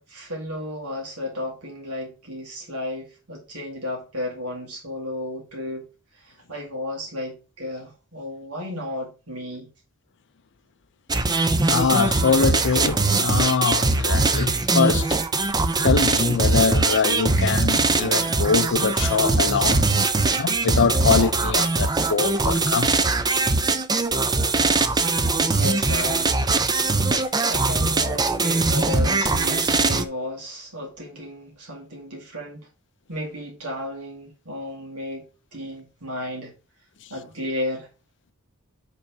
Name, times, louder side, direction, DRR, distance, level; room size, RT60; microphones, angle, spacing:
voice 1, 0.0-5.9 6.2-9.7 25.3-26.4 27.5-32.7 33.1-35.3 35.5-36.5 37.1-37.9, left 1 dB, 75° right, 2.1 m, -33 dB
sound 1, 11.1-30.0, right 3 dB, 20° right, 0.5 m, -21 dB
voice 2, 11.7-15.2 15.8-20.0 20.3-22.9, left 5 dB, 55° left, 0.5 m, -23 dB
5.7 x 3.8 x 6.0 m
head